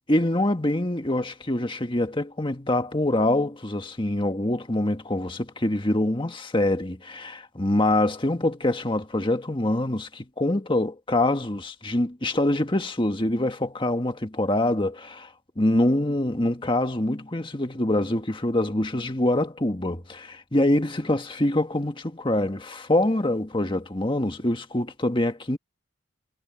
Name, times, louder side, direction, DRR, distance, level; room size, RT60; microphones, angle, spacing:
voice 1, 0.1-15.3 15.6-25.6, left 1 dB, 25° left, 1.7 m, -25 dB
head